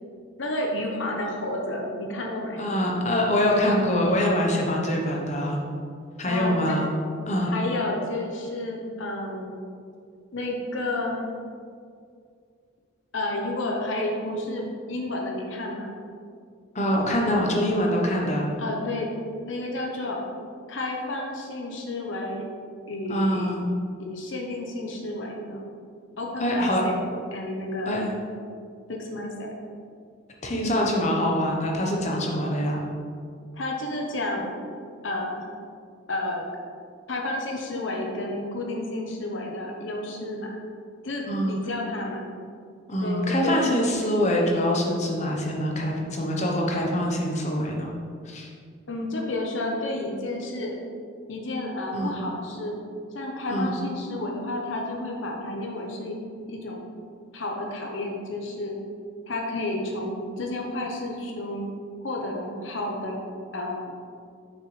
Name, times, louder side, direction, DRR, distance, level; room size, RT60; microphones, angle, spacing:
voice 1, 0.4-2.6 6.2-6.8 7.4-9.6 10.3-11.3 13.1-16.0 18.6-19.1 19.5-20.2 20.7-22.5 22.9-23.5 24.0-25.6 26.2-26.9 27.3-28.0 28.9-29.6 31.0-31.1 33.5-34.5 35.0-35.5 36.1-36.4 37.1-40.6 41.0-42.3 43.0-43.8 48.9-50.7 51.3-52.8 53.1-56.9 57.3-58.8 59.3-61.7 62.0-63.2 63.5-63.9, left 2 dB, 70° left, 0 dB, 1.0 m, -31 dB
voice 2, 2.6-5.6 6.2-6.9 7.3-7.5 16.7-18.5 23.1-23.6 26.4-26.8 27.9-28.1 30.4-32.8 41.3-41.6 42.9-47.9 48.2-48.5 51.9-52.2 53.5-53.8, equal, 35° left, -1 dB, 1.0 m, -24 dB
6.6 x 6.5 x 3.3 m, 2.3 s
head